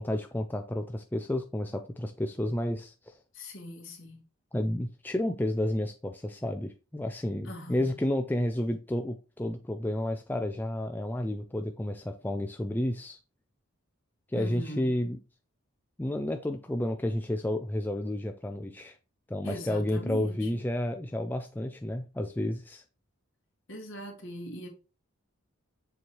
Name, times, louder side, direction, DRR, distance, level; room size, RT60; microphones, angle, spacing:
voice 1, 0.0-3.2 4.5-13.2 14.3-15.2 16.0-19.0 19.3-22.8, left 1 dB, 10° left, 0.3 m, -31 dB
voice 2, 3.3-4.2 7.5-7.9 14.4-14.9 19.4-20.6 23.7-24.7, equal, 60° left, 1.9 m, -41 dB
7.0 x 3.1 x 4.5 m
head